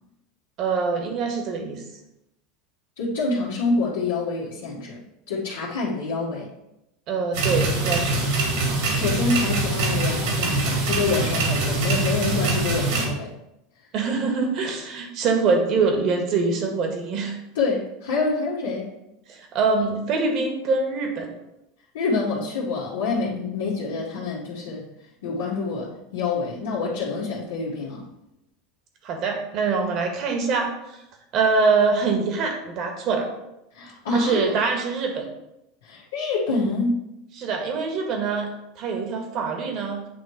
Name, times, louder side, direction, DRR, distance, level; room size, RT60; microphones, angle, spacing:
voice 1, 0.6-1.8 7.1-8.2 13.9-17.4 19.3-21.3 29.0-31.0 31.3-33.3 34.1-35.3 37.4-38.5 38.7-40.0, right 4 dB, 50° right, 3 dB, 1.6 m, -24 dB
voice 2, 3.0-5.0 5.3-6.5 8.9-13.3 17.5-18.9 21.9-24.8 25.2-28.1 33.7-34.5 35.8-37.0, left 3 dB, 85° left, -7 dB, 1.6 m, -26 dB
sound 1, 7.3-13.1, right 2 dB, 70° right, 2.4 m, -23 dB
8.5 x 3.2 x 4.7 m, 0.87 s
hypercardioid pair, 100°, 0 cm